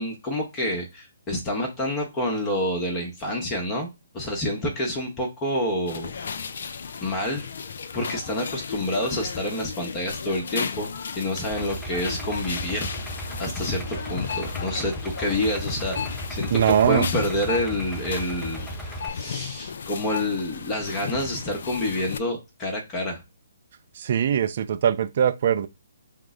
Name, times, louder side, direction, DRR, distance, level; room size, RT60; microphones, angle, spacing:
voice 1, 0.0-3.9 4.1-6.4 7.0-7.5 7.9-10.9 11.2-12.9 13.4-18.7 19.1-23.2, left 1 dB, 20° left, 0.9 m, -28 dB
sound 1, 5.9-22.2, left 6 dB, 55° left, 0.3 m, -35 dB
Idling, 11.5-19.1, right 1 dB, 5° left, 0.5 m, -36 dB
voice 2, 16.5-17.1 24.0-25.7, right 9 dB, 45° right, 0.4 m, -21 dB
3.6 x 2.0 x 3.6 m
figure-of-eight pair, 135°, 0 cm